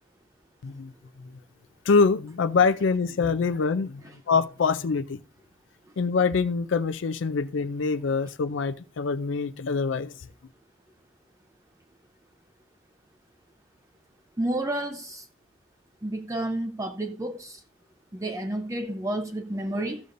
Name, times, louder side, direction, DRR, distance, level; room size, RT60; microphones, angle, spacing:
voice 1, 1.9-5.2 6.0-10.1, left 4 dB, 70° left, 0.4 m, -25 dB
voice 2, 14.4-15.2 16.0-17.6 18.1-20.0, right 1 dB, 15° right, 0.5 m, -30 dB
14.0 x 6.7 x 2.5 m
head